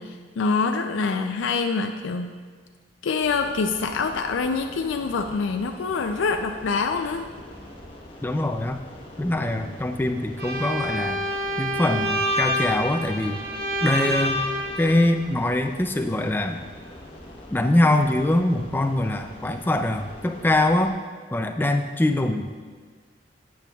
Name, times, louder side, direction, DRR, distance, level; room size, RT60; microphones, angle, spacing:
voice 1, 0.0-2.4 3.0-7.2, left 4 dB, 80° left, 5 dB, 0.4 m, -25 dB
sound 1, 3.2-20.9, left 1 dB, 30° left, 1.1 m, -44 dB
voice 2, 8.2-8.8 9.2-11.2 11.6-13.4 13.8-14.4 14.8-16.6 17.5-20.9 21.3-22.5, left 1 dB, 10° left, 6 dB, 0.3 m, -23 dB
Bowed string instrument, 10.4-15.1, equal, 55° right, 1.1 m, -27 dB
12.0 x 8.5 x 2.3 m, 1.5 s
head